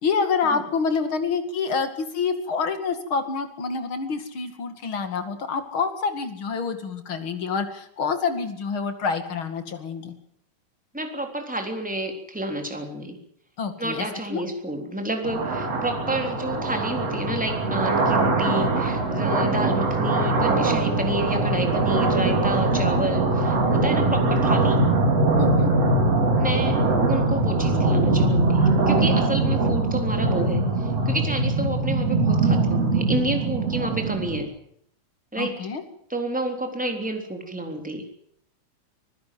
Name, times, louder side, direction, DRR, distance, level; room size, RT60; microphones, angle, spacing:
voice 1, 0.0-10.1 13.6-14.4 19.4-19.7 25.4-25.7 31.6-31.7 35.3-35.8, left 5 dB, 45° left, 8 dB, 2.9 m, -27 dB
voice 2, 10.9-13.2 13.8-24.8 26.4-26.8 27.1-34.5 35.3-35.5 36.1-38.0, right 1 dB, 5° right, 4 dB, 3.4 m, -30 dB
sound 1, 15.2-34.4, right 2 dB, 55° right, 4.7 m, -22 dB
26.0 x 15.5 x 7.7 m, 0.71 s
omnidirectional pair, 3.3 m